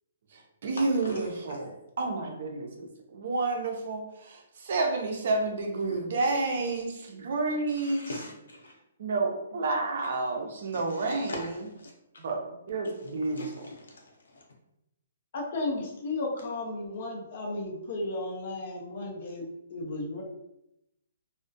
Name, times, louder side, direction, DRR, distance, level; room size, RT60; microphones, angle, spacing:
voice 1, 0.3-8.0 9.0-11.5 12.2-13.7, right 3 dB, 45° right, 2 dB, 0.5 m, -30 dB
voice 2, 5.9-6.2 7.8-8.7 10.7-11.5 11.8-11.9 13.4-14.4, left 2 dB, 85° left, -1 dB, 0.7 m, -42 dB
voice 3, 15.3-20.2, left 2 dB, 40° left, 0 dB, 0.6 m, -34 dB
2.3 x 2.0 x 2.6 m, 0.83 s
hypercardioid pair, 175°, 0 cm